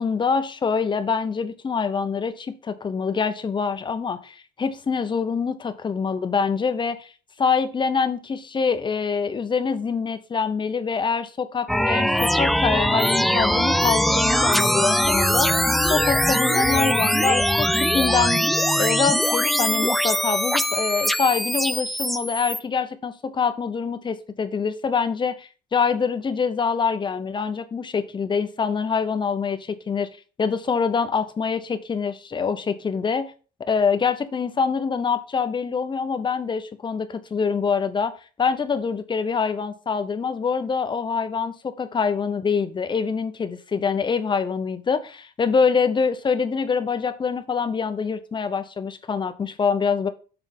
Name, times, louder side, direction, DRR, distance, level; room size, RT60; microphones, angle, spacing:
voice 1, 0.0-7.1 7.4-18.4 18.7-30.1 30.4-33.3 33.7-38.1 38.4-50.1, left 5 dB, 30° left, 9 dB, 0.8 m, -25 dB
sound 1, 11.7-22.6, equal, ahead, 0.3 m, -21 dB
7.0 x 3.5 x 5.9 m, 0.37 s
cardioid pair, 110°, 17 cm